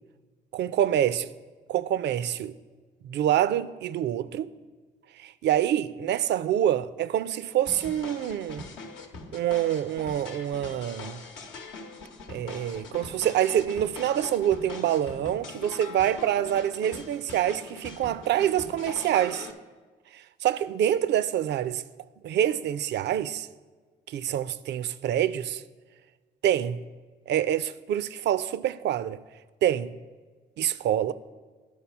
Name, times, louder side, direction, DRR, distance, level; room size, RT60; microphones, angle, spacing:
voice 1, 0.5-1.3 1.7-2.5 3.0-4.5 5.2-8.7 9.3-11.2 12.3-19.5 20.1-21.8 22.2-23.5 24.1-25.6 26.4-26.8 27.3-29.2 29.6-29.9 30.6-31.1, right 11 dB, 65° right, 0.4 m, -26 dB
sound 1, 7.7-19.5, left 3 dB, 85° left, 0.9 m, -42 dB
11.0 x 4.2 x 7.0 m
supercardioid pair, 55°, 19 cm